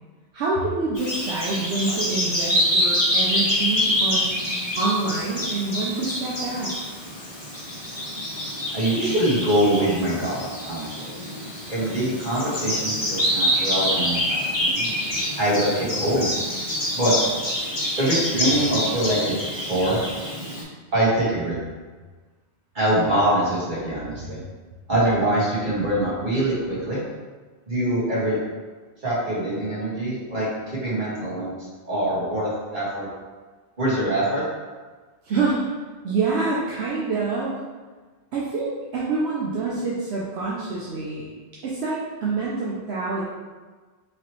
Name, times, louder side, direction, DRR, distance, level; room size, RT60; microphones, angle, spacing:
voice 1, 0.3-4.5 4.8-6.7 35.2-35.7 36.0-37.5 38.3-41.3 41.6-43.2, right 3 dB, 75° right, -6 dB, 0.9 m, -26 dB
Bird vocalization bird call bird song, 0.9-20.6, equal, 25° left, 0.9 m, -26 dB
voice 2, 8.7-11.1 11.7-14.9 15.4-16.3 16.9-17.1 18.0-19.3 19.6-20.0 20.9-21.6 22.7-24.4 24.9-27.0 27.7-28.4 29.0-33.1 33.8-34.4, right 1 dB, 45° right, -9 dB, 1.7 m, -24 dB
4.7 x 2.9 x 3.0 m, 1.4 s
omnidirectional pair, 1.1 m